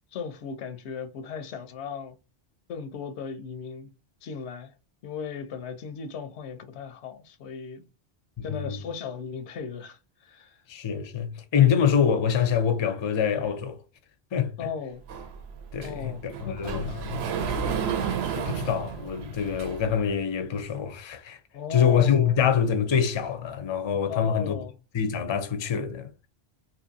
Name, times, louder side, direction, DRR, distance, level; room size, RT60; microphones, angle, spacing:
voice 1, 0.1-2.2 2.7-3.9 4.2-4.7 5.0-7.9 8.4-10.6 14.6-15.0 15.8-17.2 21.5-22.4 24.1-24.7, left 6 dB, 90° left, 0.9 m, -36 dB
voice 2, 8.4-8.8 10.7-13.8 14.3-14.5 15.7-16.1 16.6-17.2 18.4-21.4 21.7-24.6 24.9-26.1, left 8 dB, 40° left, 0.4 m, -25 dB
Sliding door, 15.1-20.0, right 7 dB, 75° right, 0.8 m, -32 dB
2.8 x 2.6 x 2.6 m
omnidirectional pair, 1.1 m